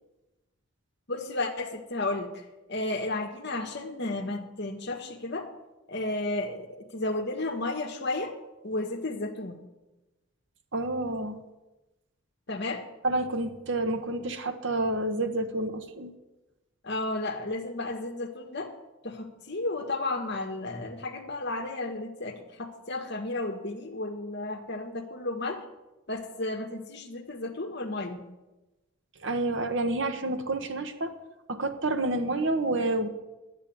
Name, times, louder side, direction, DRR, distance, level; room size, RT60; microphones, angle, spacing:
voice 1, 1.1-2.4 2.7-5.5 5.9-6.7 6.9-8.3 8.6-9.6 12.5-12.9 16.8-18.7 19.0-25.6 26.1-28.2, left 2 dB, 50° left, 4 dB, 1.6 m, -33 dB
voice 2, 10.7-11.4 13.0-16.1 29.2-31.1 31.5-33.1, right 2 dB, 55° right, 7 dB, 1.2 m, -29 dB
11.5 x 8.3 x 8.9 m, 1.0 s
head